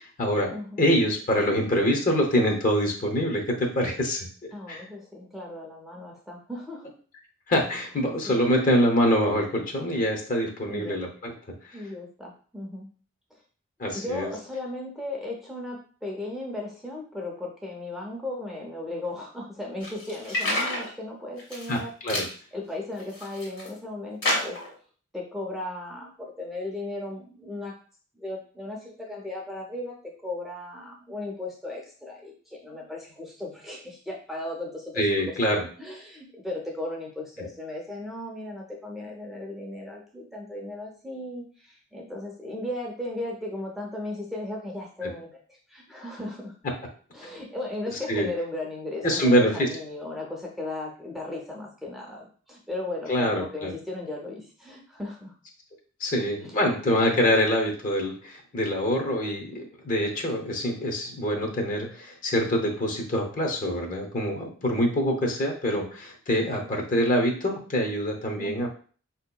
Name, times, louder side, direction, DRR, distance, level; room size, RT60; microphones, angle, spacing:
voice 1, 0.0-4.3 4.7-4.8 7.5-11.3 13.8-14.3 21.7-22.3 35.0-35.6 45.0-45.1 48.1-48.3 49.0-49.7 53.1-53.7 56.0-68.7, equal, 40° left, 2 dB, 0.7 m, -25 dB
voice 2, 0.5-0.8 4.5-6.8 8.2-8.4 10.7-11.0 11.7-12.9 13.3-13.4 13.9-21.9 22.5-24.6 25.1-27.7 28.1-35.4 35.8-46.5 47.1-55.3 56.4-56.5 66.6-66.7 68.4-68.5, left 2 dB, ahead, -3 dB, 0.5 m, -36 dB
sound 1, 19.8-20.9 21.4-21.8 22.1-22.3 22.9-23.7 24.2-24.7, left 1 dB, 60° left, 1.5 m, -29 dB
4.4 x 2.8 x 2.2 m, 0.42 s
head